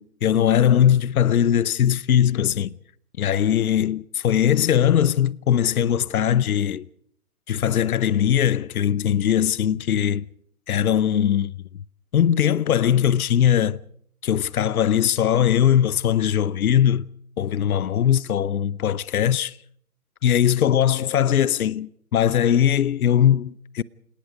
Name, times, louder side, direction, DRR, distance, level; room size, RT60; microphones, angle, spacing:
voice 1, 0.0-2.7 3.2-6.8 7.5-10.2 10.7-11.5 12.1-13.8 14.2-17.0 17.4-19.6 20.2-23.8, left 10 dB, 70° left, 0.8 m, -20 dB
28.0 x 19.0 x 5.1 m
hypercardioid pair, 135°, 45 cm